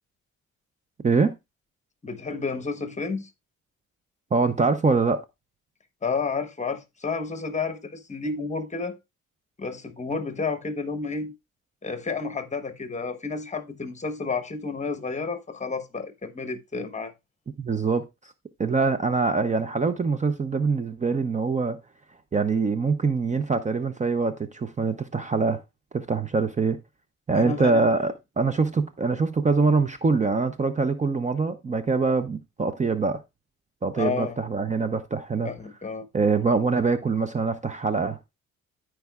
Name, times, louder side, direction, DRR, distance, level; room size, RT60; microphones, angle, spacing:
voice 1, 2.0-3.3 6.0-9.0 9.6-11.3 11.8-17.1 27.3-27.8 34.0-34.4 35.4-36.1, left 4 dB, 25° left, 1.1 m, -31 dB
voice 2, 4.3-5.2 17.6-18.0 18.6-21.8 22.3-25.6 25.9-26.8 27.3-33.2 33.8-35.5 36.1-38.3, right 4 dB, 25° right, 0.6 m, -24 dB
14.0 x 4.7 x 2.3 m
cardioid pair, 90°, 30 cm